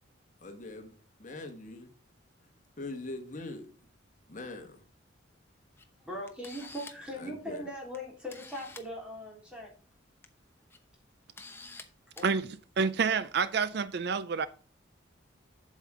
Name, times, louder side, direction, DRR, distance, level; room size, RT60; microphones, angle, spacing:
voice 1, 0.4-0.9 1.2-1.9 2.8-3.7 4.3-4.8 7.2-7.6, left 2 dB, 40° left, 1.5 m, -42 dB
Camera, 5.8-5.9 6.3-7.1 7.9-8.0 8.3-8.9 10.0-10.3 10.7-10.8 11.4-11.8 12.2-12.3, left 3 dB, 10° left, 0.8 m, -47 dB
voice 2, 5.9-9.7 12.2-12.3, equal, 5° right, 3.3 m, -40 dB
voice 3, 12.8-14.5, right 5 dB, 55° right, 0.4 m, -28 dB
8.2 x 7.4 x 3.7 m
head